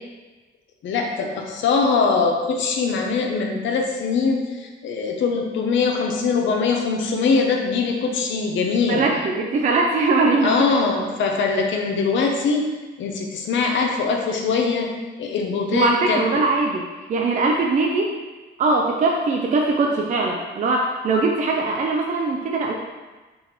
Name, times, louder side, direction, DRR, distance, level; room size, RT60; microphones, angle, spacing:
voice 1, 0.8-9.0 10.4-12.6 13.0-14.9 15.2-16.2, left 4 dB, 70° left, 2 dB, 0.7 m, -22 dB
voice 2, 8.9-10.8 15.7-16.8 17.1-18.1 18.6-22.7, right 3 dB, 40° right, 0 dB, 0.4 m, -21 dB
3.9 x 2.4 x 4.4 m, 1.3 s
cardioid pair, 90°, 20 cm